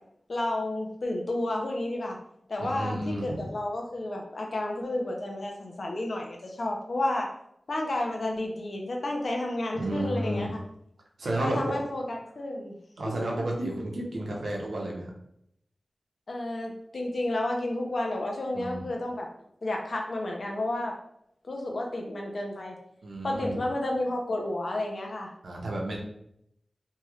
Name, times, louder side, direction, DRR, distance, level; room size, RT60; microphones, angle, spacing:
voice 1, 0.3-2.2 2.5-7.3 7.7-10.6 11.4-12.7 13.0-13.3 16.3-19.3 19.6-20.9 21.5-22.8 23.2-25.3, left 1 dB, 65° left, 1 dB, 0.6 m, -31 dB
voice 2, 2.6-3.5 9.7-10.5 11.2-11.6 13.0-15.1 18.5-18.8 23.0-23.6 25.4-26.0, right 1 dB, 85° right, -2 dB, 0.7 m, -32 dB
3.0 x 2.7 x 2.4 m, 0.74 s
wide cardioid pair, 100°, 0 cm